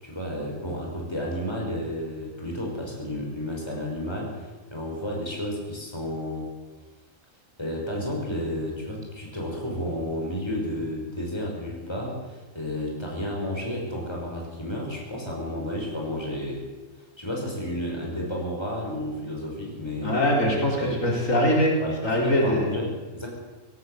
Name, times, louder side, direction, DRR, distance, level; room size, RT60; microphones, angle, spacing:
voice 1, 0.0-6.5 7.6-16.6 17.2-20.1 20.8-21.0 21.8-23.3, equal, 20° left, -1 dB, 5.7 m, -32 dB
voice 2, 20.0-21.8 22.0-22.7, equal, 90° left, -1 dB, 5.0 m, -22 dB
18.0 x 17.5 x 8.2 m, 1.2 s
omnidirectional pair, 1.3 m